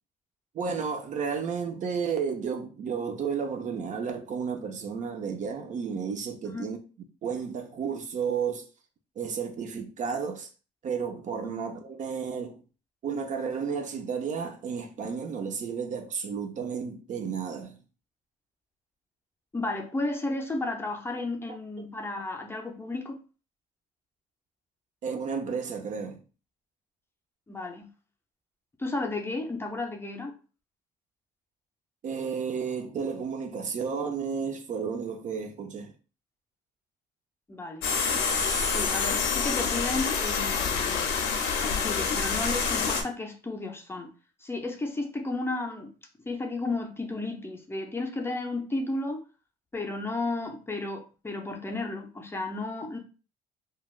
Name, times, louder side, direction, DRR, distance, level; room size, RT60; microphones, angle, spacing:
voice 1, 0.5-6.8 7.2-8.6 9.2-10.5 10.8-12.6 13.0-17.8 25.0-26.2 32.0-35.9, right 6 dB, 45° right, 0.5 m, -32 dB
voice 2, 19.5-23.2 27.5-27.9 28.8-30.3 37.5-37.8 38.7-41.1 41.6-44.1 44.4-45.9 46.3-49.2 49.7-53.0, left 2 dB, 15° left, 0.5 m, -33 dB
sound 1, 37.8-43.0, left 5 dB, 85° left, 0.6 m, -27 dB
3.2 x 2.2 x 2.4 m
cardioid pair, 110°, 17 cm